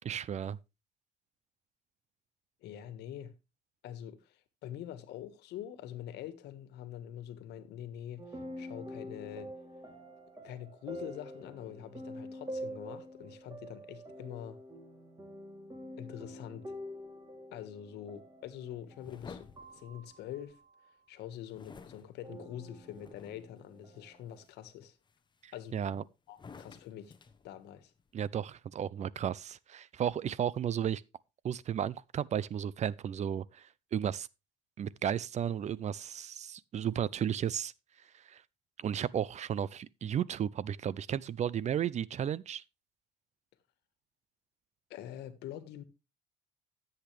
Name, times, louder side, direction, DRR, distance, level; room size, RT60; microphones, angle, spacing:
voice 1, 0.0-0.6 25.4-26.0 28.1-31.0 31.4-34.3 34.8-37.7 38.1-38.4 38.8-42.6, right 9 dB, 45° right, 0.5 m, -34 dB
voice 2, 2.6-3.3 3.8-9.5 10.4-14.6 16.0-16.8 17.5-20.6 21.1-25.0 25.5-27.1 27.4-27.9 44.9-45.8, left 11 dB, 80° left, 1.6 m, -45 dB
sound 1, 8.2-20.9 22.2-24.5, equal, 25° right, 3.1 m, -47 dB
sound 2, 19.0-20.6 21.5-23.6 24.1-24.5 25.1-25.9 26.3-28.2, left 5 dB, 25° left, 1.1 m, -53 dB
13.5 x 8.1 x 3.3 m
cardioid pair, 110°, 17 cm